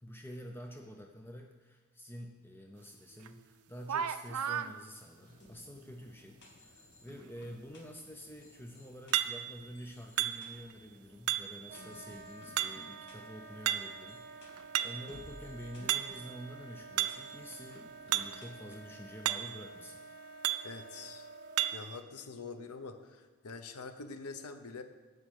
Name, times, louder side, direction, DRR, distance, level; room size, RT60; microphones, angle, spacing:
voice 1, 0.0-20.0, equal, 10° left, 2 dB, 0.5 m, -48 dB
sound 1, 3.2-3.3 3.8-4.7 9.1-9.7 10.2-10.7 11.3-11.7 12.6-13.0 13.7-14.1 14.5-15.1 15.9-16.3 17.0-17.3 18.1-18.4 18.7-18.8 19.3-19.7 20.4-20.8 21.6-21.9, right 12 dB, 80° right, 0.5 m, -33 dB
sound 2, 5.2-19.1, left 1 dB, 50° left, 1.9 m, -59 dB
Wind instrument woodwind instrument, 11.7-21.8, right 3 dB, 45° right, 0.8 m, -50 dB
voice 2, 20.6-21.3 21.7-24.8, left 4 dB, 85° left, 9 dB, 0.9 m, -45 dB
8.3 x 6.2 x 7.8 m, 1.4 s
head